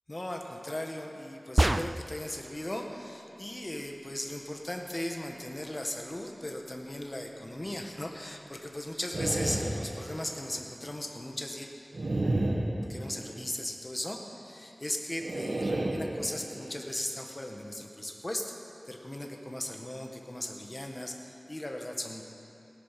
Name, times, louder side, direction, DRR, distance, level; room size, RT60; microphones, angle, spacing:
voice 1, 0.1-11.7 12.9-18.5 18.9-22.2, left 1 dB, 30° left, 2 dB, 1.5 m, -37 dB
sound 1, 1.6-2.3, right 1 dB, 30° right, 0.3 m, -26 dB
sound 2, 9.1-10.5 11.9-13.5 15.2-16.7, right 1 dB, 70° right, 1.4 m, -32 dB
17.5 x 9.8 x 5.8 m, 2.8 s
wide cardioid pair, 60°, 0 cm